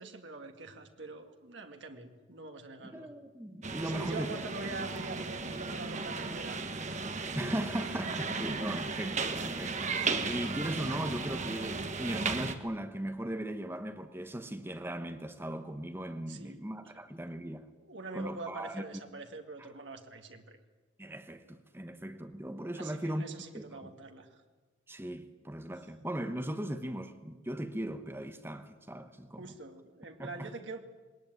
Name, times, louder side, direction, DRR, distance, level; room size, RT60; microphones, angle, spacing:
voice 1, 0.0-3.1 3.8-6.8 16.3-16.6 17.8-20.6 22.7-24.3 29.4-30.8, right 3 dB, 65° right, 2.1 m, -44 dB
voice 2, 2.9-4.3 7.4-9.9 10.2-17.7 18.1-18.8 19.6-19.7 21.0-23.2 23.5-23.9 24.9-29.5 30.2-30.5, right 1 dB, 10° right, 1.0 m, -38 dB
sound 1, 3.6-12.6, right 4 dB, 40° right, 1.5 m, -35 dB
20.0 x 19.5 x 9.4 m
head